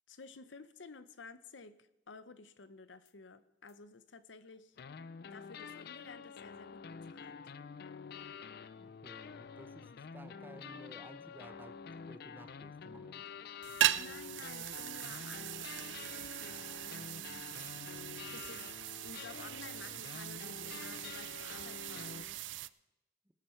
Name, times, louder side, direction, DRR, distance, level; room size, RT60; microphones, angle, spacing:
voice 1, 0.1-4.8 5.3-7.4 13.7-17.5 18.3-18.7 19.0-22.5, left 4 dB, 80° left, 13 dB, 0.8 m, -53 dB
sound 1, 3.0-3.1 3.7-3.8 4.8-22.2, left 6 dB, 60° left, 0.4 m, -48 dB
voice 2, 8.8-11.8 12.1-13.2, right 1 dB, 10° right, 10 dB, 0.7 m, -55 dB
sound 2, 13.6-22.7, right 13 dB, 75° right, 0.4 m, -39 dB
18.5 x 9.7 x 4.5 m, 0.92 s
head